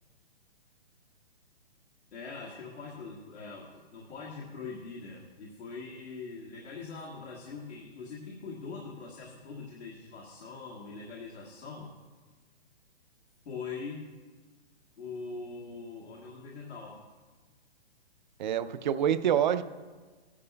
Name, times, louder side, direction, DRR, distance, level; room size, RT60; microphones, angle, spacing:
voice 1, 2.1-11.9 13.5-14.1 15.0-17.0, left 4 dB, 80° left, -3 dB, 1.7 m, -42 dB
voice 2, 18.4-19.6, right 9 dB, 45° right, 12 dB, 0.5 m, -26 dB
15.5 x 11.0 x 2.2 m, 1.4 s
hypercardioid pair, 150°, 32 cm